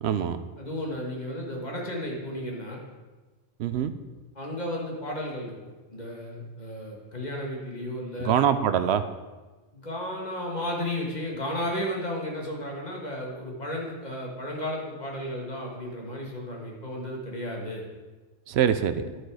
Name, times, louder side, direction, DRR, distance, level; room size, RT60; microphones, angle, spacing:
voice 1, 0.0-0.4 3.6-3.9 8.2-9.0 18.5-19.0, right 9 dB, 65° right, 11 dB, 0.8 m, -24 dB
voice 2, 0.6-2.8 4.4-8.3 9.7-17.8 19.0-19.1, left 1 dB, 35° left, -1 dB, 1.8 m, -33 dB
10.5 x 6.3 x 4.8 m, 1.2 s
omnidirectional pair, 1.3 m